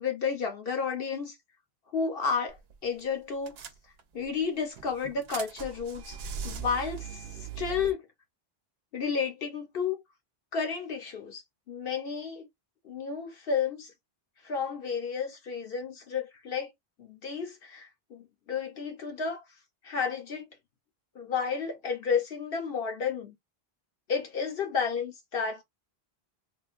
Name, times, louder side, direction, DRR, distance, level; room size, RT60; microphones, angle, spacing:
voice 1, 0.0-1.3 1.9-3.6 4.1-6.2 6.4-7.2 7.6-8.0 8.9-10.0 10.5-11.4 11.7-12.5 12.8-13.9 14.4-16.7 17.0-19.4 19.8-20.5 21.1-23.3 24.1-25.6, left 6 dB, 65° left, 1.0 m, -31 dB
sound 1, 2.5-2.7 3.0-3.1 3.5-4.3 4.8-7.9, right 7 dB, 80° right, 0.8 m, -40 dB
3.7 x 2.3 x 2.5 m
omnidirectional pair, 1.0 m